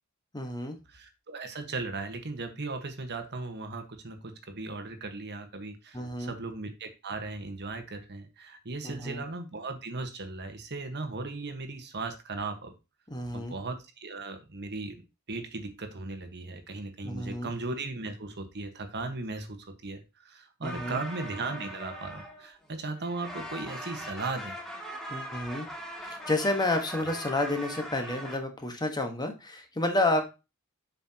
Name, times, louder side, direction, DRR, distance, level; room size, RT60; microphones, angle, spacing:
voice 1, 0.3-0.7 5.9-6.3 8.8-9.2 13.1-13.6 17.0-17.5 20.6-21.0 25.1-25.7 26.0-30.2, left 2 dB, 20° left, 5 dB, 1.3 m, -30 dB
voice 2, 0.9-12.7 13.3-24.6, right 3 dB, 50° right, 8 dB, 1.3 m, -37 dB
sound 1, 20.6-22.7 23.0-28.4, equal, ahead, 1.8 m, -40 dB
7.4 x 5.7 x 2.8 m, 0.27 s
head